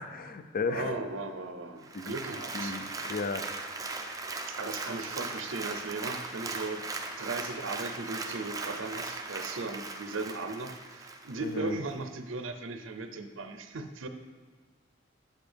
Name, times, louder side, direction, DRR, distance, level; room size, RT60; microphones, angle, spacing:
voice 1, 0.0-1.0 1.9-2.1 2.5-3.5 11.4-11.8, left 4 dB, 45° left, 10 dB, 0.5 m, -34 dB
voice 2, 0.7-2.8 4.5-6.8 7.2-14.1, right 3 dB, 70° right, 8 dB, 0.6 m, -37 dB
Applause, 1.8-11.6 12.0-12.1, right 3 dB, 20° right, 0.6 m, -38 dB
8.3 x 8.2 x 3.4 m, 1.5 s
head